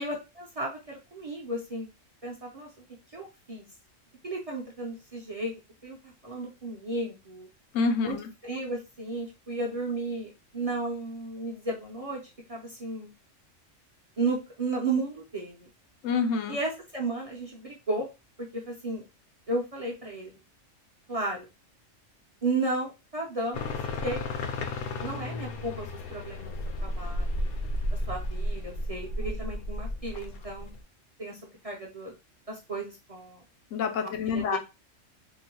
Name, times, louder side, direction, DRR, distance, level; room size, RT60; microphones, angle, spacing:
voice 1, 0.0-1.9 2.2-2.7 3.1-3.6 4.2-5.5 5.8-7.5 8.0-8.2 8.4-12.2 12.5-13.1 14.2-15.7 16.5-18.1 18.4-19.0 19.5-20.4 21.1-21.5 22.4-24.5 25.0-26.6 26.8-27.5 27.9-30.7 31.2-32.1 32.5-33.4 34.0-34.6, right 2 dB, 40° right, 0.5 m, -34 dB
voice 2, 7.7-8.6 16.0-16.6 33.7-34.6, left 5 dB, 80° left, 1.0 m, -28 dB
sound 1, 23.5-30.8, left 1 dB, 60° left, 0.7 m, -33 dB
3.7 x 2.1 x 2.9 m
omnidirectional pair, 1.3 m